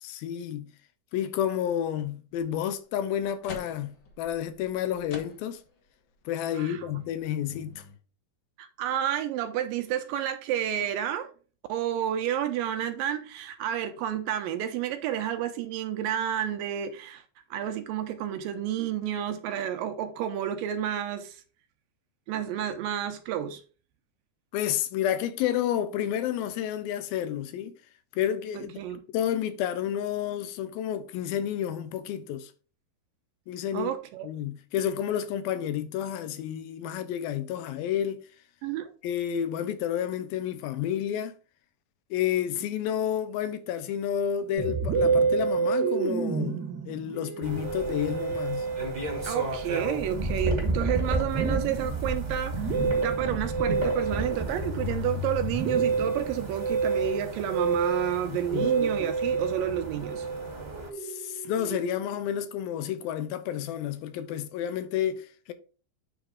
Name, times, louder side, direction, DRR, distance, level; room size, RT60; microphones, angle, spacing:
voice 1, 0.0-0.7 1.1-5.6 6.3-7.8 24.5-27.8 28.1-28.8 29.1-32.5 33.5-33.9 34.2-38.2 39.0-41.3 42.1-48.7 58.3-58.7 61.0-65.5, left 10 dB, 85° left, 2.5 m, -30 dB
sound 1, 2.4-2.5 3.0-5.8 6.2-6.3 6.7-8.0, left 4 dB, 65° left, 1.2 m, -47 dB
voice 2, 8.6-11.3 11.7-17.2 17.5-21.4 22.3-23.6 28.5-29.0 33.7-34.3 38.6-38.9 49.2-60.3, right 10 dB, 75° right, 2.2 m, -30 dB
Musical instrument, 44.6-62.2, right 5 dB, 55° right, 1.3 m, -30 dB
sound 2, 47.4-60.9, right 1 dB, 25° right, 1.0 m, -34 dB
9.0 x 3.5 x 5.0 m
omnidirectional pair, 4.3 m